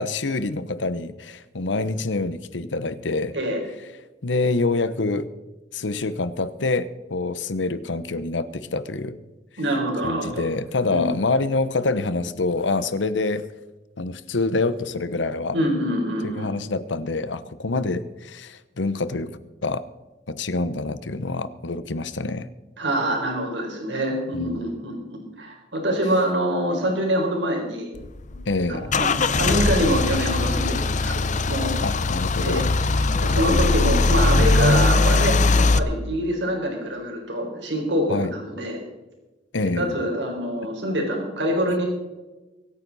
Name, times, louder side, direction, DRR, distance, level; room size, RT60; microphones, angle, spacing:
voice 1, 0.0-3.4 4.2-5.3 5.7-9.2 10.0-13.4 14.0-15.6 16.2-19.9 20.3-22.5 24.3-24.6 28.5-28.9 31.8-32.7 38.1-38.3 39.5-40.0, left 3 dB, 85° left, 15 dB, 0.9 m, -26 dB
voice 2, 9.6-10.5 10.9-11.0 15.5-16.5 22.8-27.9 28.7-31.7 32.4-32.6 33.2-38.8 39.6-41.8, equal, 75° right, 1 dB, 4.1 m, -25 dB
Car / Engine starting / Idling, 28.0-35.8, left 3 dB, 45° left, 0.6 m, -20 dB
24.0 x 9.3 x 4.1 m, 1.1 s
head